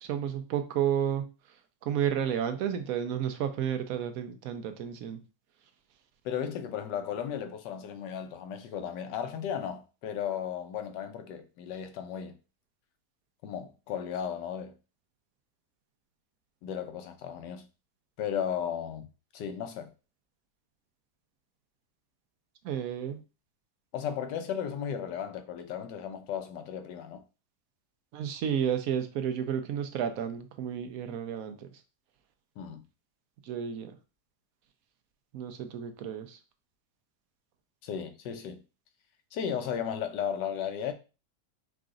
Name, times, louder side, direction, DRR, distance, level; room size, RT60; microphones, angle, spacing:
voice 1, 0.0-5.2 22.6-23.2 28.1-31.7 33.4-34.0 35.3-36.4, right 9 dB, 70° right, 0.9 m, -32 dB
voice 2, 6.2-12.4 13.4-14.8 16.6-17.7 18.2-19.1 19.3-19.9 23.9-27.2 32.6-32.8 37.8-38.6 39.3-40.9, left 8 dB, 80° left, 1.3 m, -35 dB
4.8 x 2.4 x 3.7 m
omnidirectional pair, 1.8 m